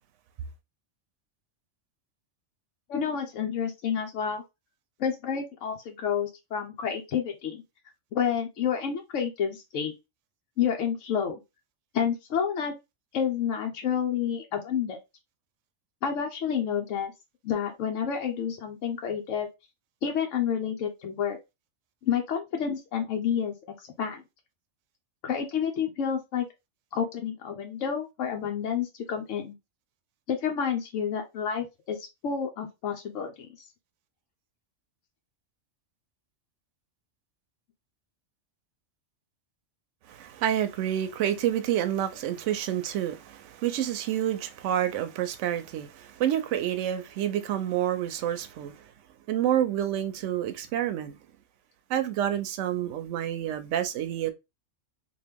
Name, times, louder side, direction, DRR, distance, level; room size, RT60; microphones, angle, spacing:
voice 1, 2.9-4.4 5.0-7.6 8.1-9.9 10.6-11.4 11.9-12.7 13.1-15.0 16.0-17.1 17.4-19.5 20.0-21.4 22.1-23.5 24.0-24.2 25.2-26.4 26.9-29.6 30.3-33.5, left 7 dB, 85° left, 1.0 m, -29 dB
voice 2, 40.1-48.8 49.3-51.2 51.9-54.3, right 11 dB, 80° right, 0.9 m, -28 dB
3.0 x 2.5 x 3.4 m
omnidirectional pair, 1.3 m